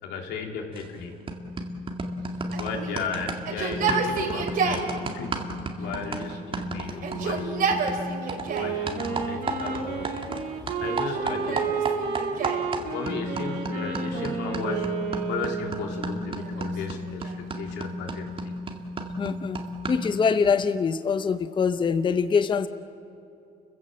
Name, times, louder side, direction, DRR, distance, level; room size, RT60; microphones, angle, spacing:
voice 1, 0.0-1.2 2.6-5.5 5.8-7.7 8.5-10.1 10.8-11.7 12.9-14.9 15.3-18.5, left 5 dB, 90° left, 2 dB, 3.1 m, -35 dB
sound 1, 0.8-1.0 1.3-10.4 10.7-20.2, right 1 dB, 30° right, 2.2 m, -33 dB
Yell, 2.5-4.9 5.8-6.5 6.9-8.8 9.5-10.2 10.9-12.7 14.1-14.9 15.8-17.5, right 4 dB, 60° right, 3.9 m, -31 dB
Wind instrument woodwind instrument, 8.5-16.2, right 6 dB, 85° right, 3.6 m, -32 dB
voice 2, 19.2-19.6 19.9-22.7, left 5 dB, 30° left, 11 dB, 0.7 m, -24 dB
29.5 x 16.0 x 7.6 m, 2.8 s
cardioid pair, 110°, 17 cm